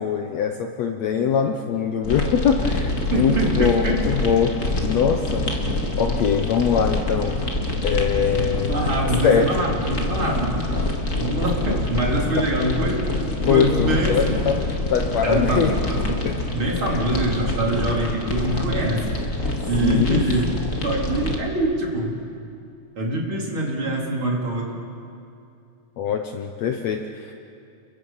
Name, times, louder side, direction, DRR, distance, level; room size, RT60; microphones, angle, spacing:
voice 1, 0.0-4.6 4.8-5.4 6.0-7.5 7.8-8.7 9.2-9.5 13.5-14.6 14.9-15.8 16.2-16.3 19.8-20.2 26.0-27.3, left 7 dB, 70° left, 5 dB, 1.8 m, -22 dB
sound 1, 2.0-21.4, left 2 dB, 30° left, 1.9 m, -26 dB
voice 2, 3.1-4.0 8.7-10.8 11.2-13.1 13.5-14.4 15.2-16.3 16.5-19.1 19.7-20.5 20.8-22.2 23.0-24.7, right 1 dB, 40° right, -2 dB, 3.9 m, -24 dB
30.0 x 22.5 x 5.7 m, 2.5 s
omnidirectional pair, 3.8 m